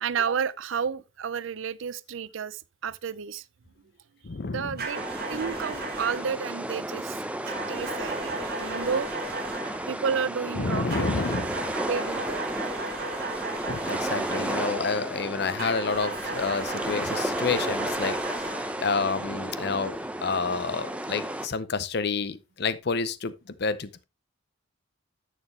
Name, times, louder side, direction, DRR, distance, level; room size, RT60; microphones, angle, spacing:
voice 1, 0.0-3.4 4.5-5.0 5.3-7.2 7.7-9.1 9.9-11.2 11.9-12.4 12.7-12.8, right 6 dB, 70° right, 0.4 m, -31 dB
voice 2, 4.2-4.8 10.6-11.7 13.7-18.2 18.8-20.0 20.2-23.3 23.6-24.0, left 4 dB, 55° left, 0.6 m, -29 dB
sound 1, 4.8-6.4 7.4-9.9 10.9-14.9 15.6-18.8, right 3 dB, 50° right, 3.1 m, -36 dB
sound 2, 4.9-21.5, right 1 dB, 5° right, 0.7 m, -33 dB
11.0 x 6.6 x 3.2 m
head